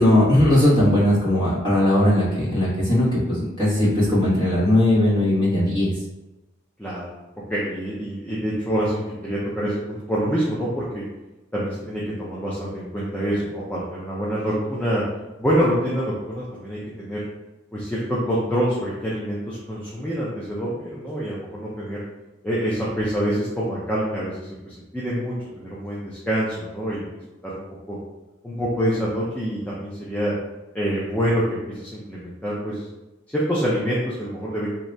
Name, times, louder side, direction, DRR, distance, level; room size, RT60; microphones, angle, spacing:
voice 1, 0.0-5.9, left 1 dB, 25° left, -10 dB, 1.4 m, -19 dB
voice 2, 6.8-7.1 7.5-11.0 11.5-15.0 15.4-17.2 17.7-22.0 22.4-28.0 28.4-30.3 30.7-32.9 33.3-34.7, equal, 5° left, -7 dB, 0.5 m, -26 dB
2.8 x 2.6 x 3.3 m, 1.0 s
head